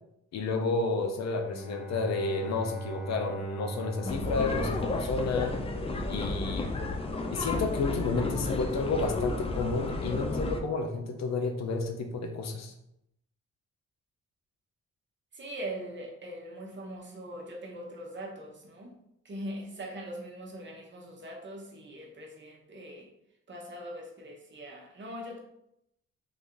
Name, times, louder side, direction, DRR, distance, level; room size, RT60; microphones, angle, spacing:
voice 1, 0.3-5.6 6.1-6.7 7.3-12.7, left 3 dB, 65° left, 5 dB, 0.6 m, -31 dB
Bowed string instrument, 1.3-5.6, right 3 dB, ahead, 0.9 m, -41 dB
sound 1, 4.0-10.6, left 2 dB, 20° left, 0.4 m, -32 dB
voice 2, 15.3-18.9 19.2-23.1 23.5-25.4, right 1 dB, 40° right, -1 dB, 0.9 m, -41 dB
3.3 x 2.5 x 3.7 m, 0.80 s
cardioid pair, 120°, 29 cm